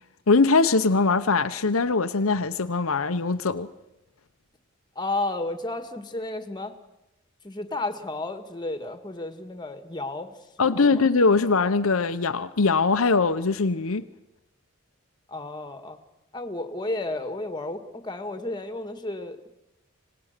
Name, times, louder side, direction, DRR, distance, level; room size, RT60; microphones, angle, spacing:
voice 1, 0.3-3.7 10.6-14.0, left 4 dB, 80° left, 0.9 m, -22 dB
voice 2, 5.0-6.7 7.4-10.3 10.7-11.0 15.3-16.0 16.3-19.4, left 2 dB, 20° left, 1.8 m, -32 dB
26.0 x 19.5 x 6.7 m
head